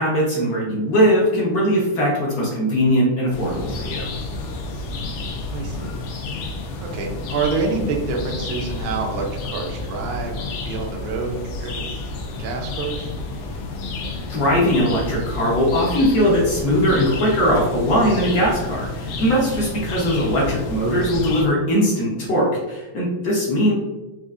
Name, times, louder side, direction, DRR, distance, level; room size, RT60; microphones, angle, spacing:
voice 1, 0.0-4.1 14.3-23.7, equal, 60° left, -4 dB, 1.1 m, -20 dB
sound 1, 3.3-21.5, left 3 dB, 80° left, 1.5 m, -30 dB
voice 2, 5.5-6.0 6.8-11.8 12.4-13.1, right 4 dB, 70° right, 1 dB, 0.9 m, -27 dB
4.4 x 2.4 x 2.4 m, 1.1 s
omnidirectional pair, 2.3 m